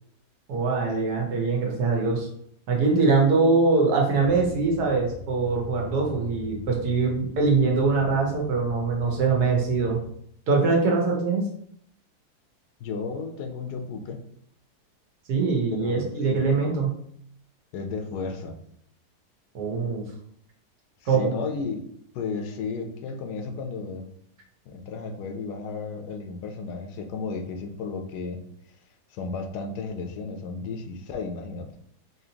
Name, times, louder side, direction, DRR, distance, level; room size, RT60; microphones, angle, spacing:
voice 1, 0.5-2.3 2.7-10.0 10.5-11.4 15.3-17.0 19.5-20.0 21.1-21.3, right 4 dB, 80° right, 0 dB, 1.4 m, -23 dB
sound 1, 4.2-10.1, left 2 dB, 20° left, 0.6 m, -42 dB
voice 2, 12.8-14.2 15.7-16.5 17.7-18.6 21.0-21.8 22.1-24.1 24.7-28.4 29.1-31.7, left 4 dB, 85° left, 5 dB, 1.2 m, -33 dB
4.3 x 2.8 x 2.8 m, 0.68 s
omnidirectional pair, 1.7 m